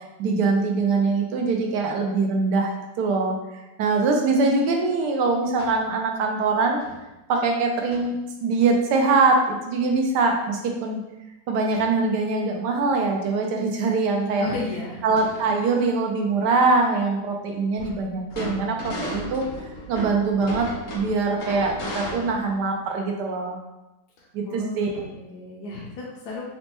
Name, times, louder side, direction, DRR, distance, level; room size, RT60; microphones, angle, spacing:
voice 1, 0.2-3.4 3.8-6.8 7.3-11.0 11.5-14.5 15.0-19.5 19.9-23.6 24.3-24.9, right 3 dB, 80° right, 2 dB, 1.2 m, -23 dB
sound 1, 5.6-5.9 6.8-7.0 7.3-7.4 7.9-8.1 11.7-11.9 12.4-12.5 13.8-13.9 14.2-14.3 14.9-15.8 17.7-22.6, equal, 55° left, 0.8 m, -35 dB
voice 2, 14.2-15.1 24.2-26.5, left 2 dB, 75° left, -5 dB, 1.1 m, -34 dB
4.1 x 2.2 x 2.9 m, 0.98 s
omnidirectional pair, 1.8 m